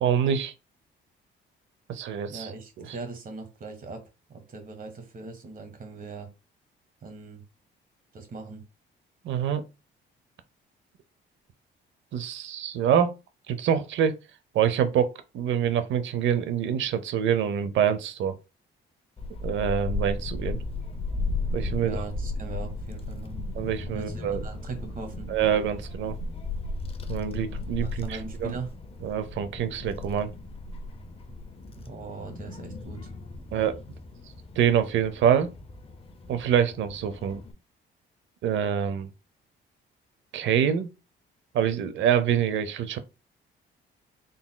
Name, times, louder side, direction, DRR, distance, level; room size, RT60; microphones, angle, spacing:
voice 1, 0.0-0.5 1.9-2.5 2.8-2.9 9.2-9.6 12.1-13.1 13.5-14.1 14.5-18.4 19.4-20.6 21.5-22.0 23.6-24.4 25.3-26.2 27.1-28.5 29.0-30.3 33.5-33.8 34.6-35.5 36.3-37.4 38.4-39.1 40.3-40.9 41.5-43.0, right 9 dB, 70° right, 0.6 m, -25 dB
voice 2, 2.3-4.0 4.3-6.3 7.0-7.4 8.1-8.6 21.8-23.4 23.9-25.3 27.8-28.7 31.8-33.1, right 4 dB, 45° right, 1.3 m, -40 dB
Child speech kid speaking / Wind, 19.2-37.5, left 2 dB, 30° left, 0.6 m, -35 dB
3.9 x 3.5 x 2.2 m
cardioid pair, 90°, 20 cm